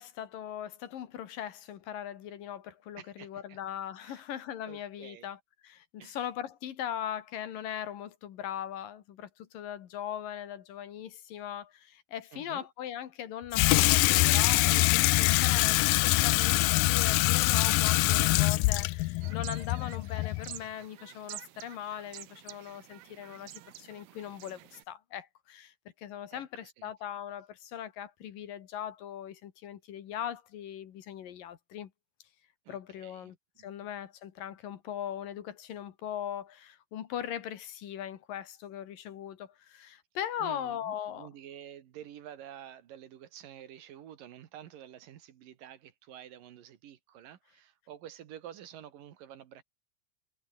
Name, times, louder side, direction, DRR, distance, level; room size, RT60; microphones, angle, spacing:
voice 1, 0.0-31.9 32.7-41.3, left 10 dB, 65° left, 3.2 m, -40 dB
voice 2, 3.0-3.6 4.0-4.2 4.7-5.3 6.0-6.2 12.3-12.7 26.3-26.9 32.7-33.3 33.6-33.9 40.4-49.6, right 10 dB, 65° right, 3.1 m, -49 dB
Water tap faucet / Sink (filling or washing), 13.5-20.6, left 22 dB, 85° left, 2.0 m, -24 dB
sound 1, 19.2-24.8, right 15 dB, 90° right, 3.2 m, -48 dB
omnidirectional pair, 4.3 m